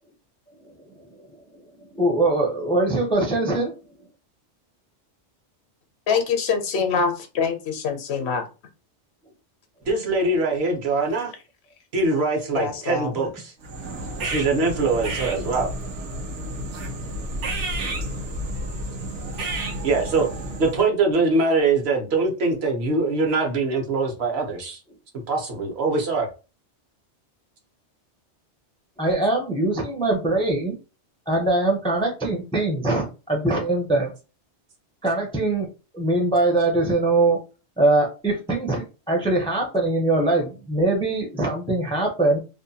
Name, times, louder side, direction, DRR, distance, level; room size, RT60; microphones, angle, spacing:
voice 1, 1.9-3.7 18.0-18.1 29.0-30.8 31.3-34.1 35.0-35.7 35.9-37.4 37.8-42.4, right 2 dB, 10° left, 0.4 m, -22 dB
voice 2, 6.1-8.4 12.5-13.1, left 5 dB, 70° left, 0.8 m, -24 dB
voice 3, 9.8-11.3 11.9-13.5 14.2-15.7 19.8-20.3 20.6-24.8 25.3-26.3, right 3 dB, 65° right, 1.0 m, -23 dB
sound 1, 13.6-20.9, right 1 dB, 90° right, 1.0 m, -31 dB
2.6 x 2.2 x 2.7 m
omnidirectional pair, 1.2 m